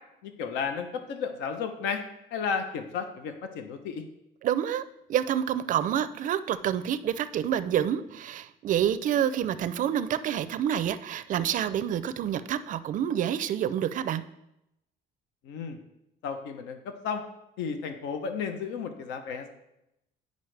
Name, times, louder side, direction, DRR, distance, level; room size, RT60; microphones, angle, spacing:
voice 1, 0.2-2.0 2.3-4.0 15.4-15.8 16.2-16.8 17.0-17.2 17.6-19.5, left 6 dB, 85° left, 7 dB, 0.8 m, -33 dB
voice 2, 4.4-4.8 5.1-14.2, right 10 dB, 45° right, 13 dB, 0.4 m, -28 dB
9.4 x 5.2 x 3.3 m, 0.85 s
cardioid pair, 135°, 18 cm